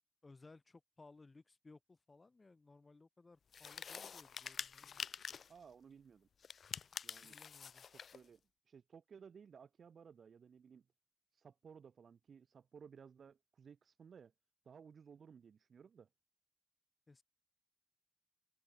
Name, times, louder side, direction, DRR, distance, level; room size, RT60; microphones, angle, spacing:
voice 1, 0.2-5.0 7.2-7.9 17.1-17.2, left 3 dB, 25° left, 1.1 m, -61 dB
sound 1, 3.5-5.6 6.4-8.2, left 7 dB, 60° left, 0.4 m, -47 dB
voice 2, 5.5-6.3 7.0-7.4 8.1-8.4 8.6-10.9 11.3-14.3 14.6-16.1, right 6 dB, 60° right, 1.7 m, -58 dB
wide cardioid pair, 160°, 0 cm